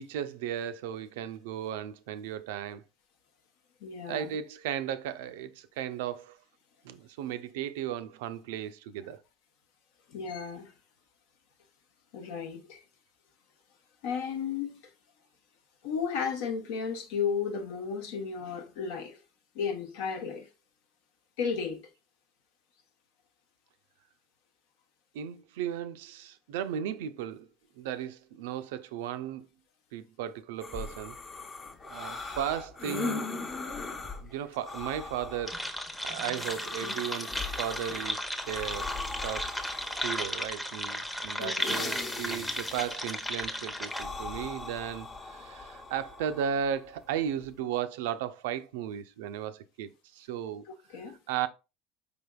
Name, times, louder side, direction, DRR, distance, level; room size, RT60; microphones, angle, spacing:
voice 1, 0.0-2.8 4.1-6.4 6.8-9.2 25.1-27.5 27.8-29.5 29.9-31.2 31.9-33.3 34.2-35.6 36.0-39.0 39.2-39.5 40.0-50.6 51.3-51.5, right 9 dB, 75° right, 0.4 m, -35 dB
voice 2, 3.8-4.4 10.1-10.7 12.1-12.8 14.0-14.7 15.8-19.2 19.5-20.5 21.4-21.8 36.8-36.9 41.4-41.8 50.9-51.2, left 6 dB, 70° left, 0.8 m, -34 dB
sound 1, 30.6-47.6, left 3 dB, 35° left, 0.9 m, -40 dB
sound 2, 35.5-44.0, equal, 5° left, 0.7 m, -35 dB
5.0 x 3.4 x 2.2 m
hypercardioid pair, 80°, 0 cm